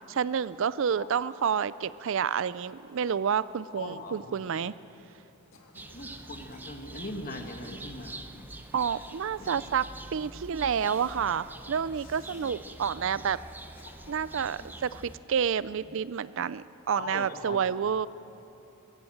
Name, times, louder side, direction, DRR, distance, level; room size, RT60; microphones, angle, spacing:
voice 1, 0.1-4.7 8.7-9.8 10.1-13.4 14.1-18.1, right 7 dB, 60° right, 17 dB, 0.4 m, -29 dB
voice 2, 1.0-1.3 3.7-4.4 5.9-8.5 9.4-9.7 12.4-12.6 14.1-14.2 14.5-14.7 16.9-17.6, left 2 dB, 40° left, 4 dB, 1.8 m, -41 dB
Cough, 5.5-5.9 6.5-7.2 7.6-7.8 8.5-9.7 10.7-11.3 11.9-12.6 13.5-14.3 15.5-16.0, left 2 dB, 70° left, 2.1 m, -55 dB
sound 1, 5.7-15.2, right 2 dB, 10° right, 0.7 m, -45 dB
22.5 x 16.0 x 7.9 m, 2.9 s
head